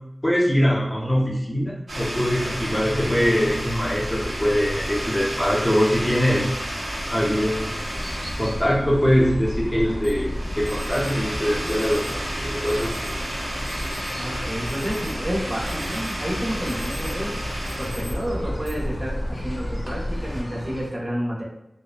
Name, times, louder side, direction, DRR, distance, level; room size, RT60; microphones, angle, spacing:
voice 1, 0.2-6.5 7.1-7.8 8.4-10.3 10.6-13.2, equal, 15° left, -5 dB, 0.6 m, -22 dB
sound 1, 1.9-20.4, equal, 85° right, 0.7 m, -30 dB
sound 2, 7.9-20.8, equal, 60° left, 0.4 m, -37 dB
Alarm, 10.0-10.1 10.7-11.1 11.7-12.1 12.7-13.1 13.7-14.1 14.5-15.3 15.7-16.2 16.5-17.2 17.7-18.1 18.6-18.7 19.5-19.9, equal, 10° right, 1.2 m, -44 dB
voice 2, 14.2-17.4 17.8-21.4, equal, 40° right, -5 dB, 0.8 m, -30 dB
2.7 x 2.1 x 2.3 m, 0.85 s
wide cardioid pair, 60°, 0 cm